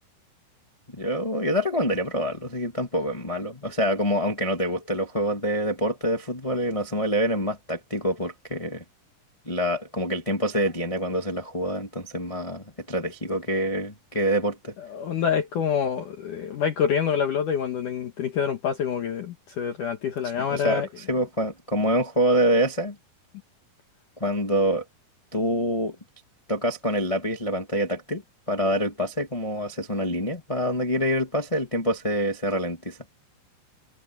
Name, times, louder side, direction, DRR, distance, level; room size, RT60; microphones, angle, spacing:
voice 1, 0.9-8.8 9.4-14.7 20.4-22.9 24.2-24.8 25.3-25.9 26.5-28.2 28.5-33.0, equal, 35° left, 0.5 m, -26 dB
voice 2, 14.9-20.9, left 7 dB, 60° left, 2.6 m, -26 dB
omnidirectional pair, 4.8 m